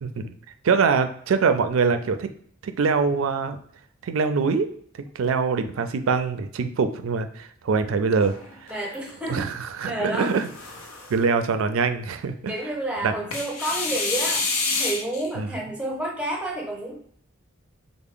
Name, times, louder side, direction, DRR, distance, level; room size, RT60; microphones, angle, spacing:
voice 1, 0.0-0.3 0.6-2.3 2.6-3.6 4.0-4.7 5.2-8.3 8.6-8.7 9.3-10.5 11.1-12.5 13.0-13.1 15.4-15.5, right 5 dB, 75° right, 9 dB, 0.4 m, -23 dB
sound 1, 8.2-9.1 10.1-11.2 13.3-15.3, left 3 dB, 90° left, 0.6 m, -28 dB
voice 2, 8.7-9.5 9.8-10.4 12.5-14.5 14.7-16.9, right 1 dB, 5° right, -1 dB, 0.6 m, -30 dB
3.4 x 2.0 x 3.6 m, 0.62 s
head